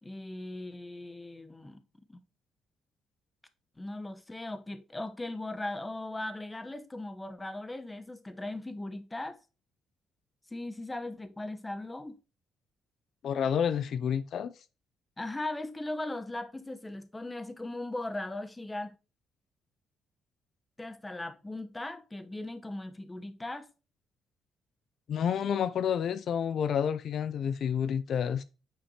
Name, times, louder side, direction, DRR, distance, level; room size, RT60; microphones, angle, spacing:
voice 1, 0.0-1.8 2.1-2.2 3.8-9.4 10.5-12.2 15.2-18.9 20.8-23.7, left 2 dB, 15° left, 0.9 m, -38 dB
voice 2, 13.2-14.5 25.1-28.4, left 8 dB, 65° left, 0.4 m, -29 dB
8.8 x 5.0 x 2.9 m
cardioid pair, 90°, 0 cm